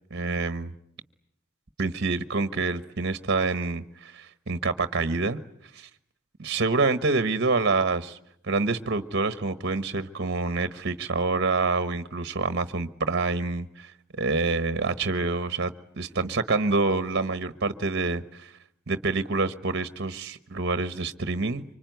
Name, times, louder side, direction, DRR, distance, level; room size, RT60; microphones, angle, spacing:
voice 1, 0.1-0.7 1.8-5.4 5.7-5.9 6.4-8.2 8.4-18.5 18.9-21.6, right 3 dB, 55° right, 12 dB, 1.2 m, -27 dB
25.0 x 25.0 x 9.3 m, 0.72 s
head